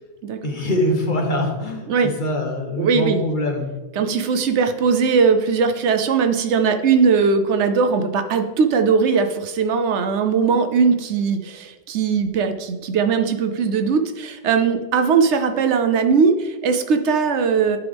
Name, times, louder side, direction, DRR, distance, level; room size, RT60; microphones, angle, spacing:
voice 1, 0.4-3.7, left 1 dB, 45° left, 2 dB, 1.2 m, -23 dB
voice 2, 2.8-3.2 4.0-17.8, right 5 dB, 70° right, 8 dB, 0.9 m, -19 dB
11.0 x 4.6 x 3.5 m, 1.1 s
omnidirectional pair, 1.2 m